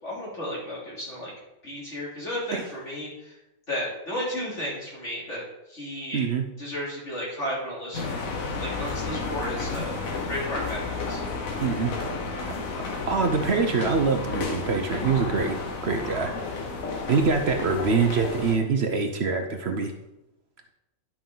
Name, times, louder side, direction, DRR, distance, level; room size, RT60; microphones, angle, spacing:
voice 1, 0.0-1.3 1.6-3.4 3.7-5.4 5.7-6.3 6.6-8.1 8.6-11.2, equal, 60° left, -6 dB, 3.8 m, -33 dB
voice 2, 6.1-6.5 8.1-8.2 11.6-11.9 13.1-15.6 15.8-16.3 17.1-19.9, right 4 dB, 55° right, 5 dB, 1.0 m, -24 dB
sound 1, 7.9-18.6, left 4 dB, 90° left, 1.6 m, -32 dB
10.5 x 5.9 x 3.9 m, 0.90 s
omnidirectional pair, 1.4 m